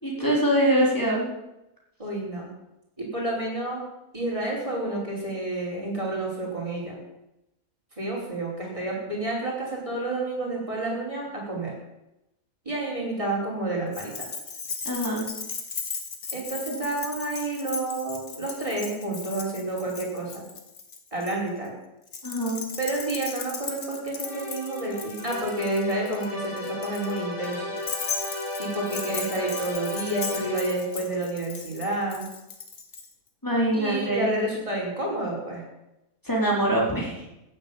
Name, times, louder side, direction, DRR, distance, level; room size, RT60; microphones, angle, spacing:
voice 1, 0.0-1.3 14.8-15.3 16.7-16.9 22.2-22.6 33.4-34.3 36.2-37.2, right 1 dB, 15° left, -3 dB, 4.3 m, -24 dB
voice 2, 2.0-2.5 3.0-3.8 4.1-7.0 8.0-11.7 12.7-14.3 16.3-20.4 21.1-21.7 22.8-27.6 28.6-32.3 33.7-35.6, right 2 dB, 20° right, -3 dB, 5.2 m, -30 dB
Keys jangling, 13.9-21.3 22.1-33.1, left 5 dB, 60° left, 2.0 m, -37 dB
sound 1, 24.2-31.1, left 2 dB, 35° left, 3.6 m, -35 dB
15.0 x 8.2 x 9.0 m, 0.92 s
omnidirectional pair, 1.6 m